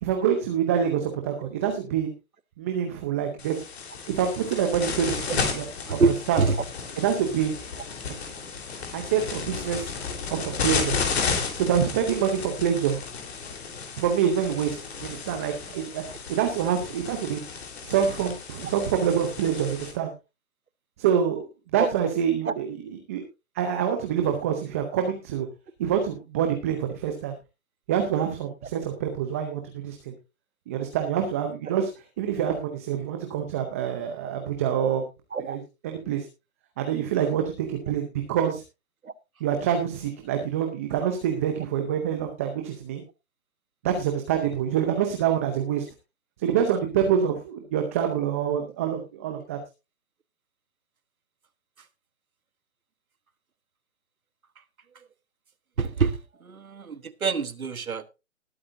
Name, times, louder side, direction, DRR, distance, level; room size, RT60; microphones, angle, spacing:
voice 1, 0.0-2.1 2.6-3.6 4.1-6.0 6.3-6.4 7.0-7.6 8.9-9.9 10.3-11.0 11.6-13.0 14.0-16.0 16.3-17.4 17.8-20.1 21.0-21.5 21.7-23.2 23.6-25.5 25.8-27.3 27.9-30.1 30.7-31.9 32.2-35.0 35.4-36.3 36.8-38.6 39.4-43.0 43.8-45.8 46.4-49.6, right 8 dB, 10° right, 0.6 m, -26 dB
sound 1, 3.4-19.9, left 5 dB, 50° left, 3.8 m, -33 dB
voice 2, 5.9-6.6 21.8-21.9 22.4-22.5 35.3-35.6 39.0-39.1 55.8-56.2 56.4-58.1, right 4 dB, 90° right, 1.3 m, -25 dB
19.5 x 8.6 x 2.6 m
hypercardioid pair, 145°, 41 cm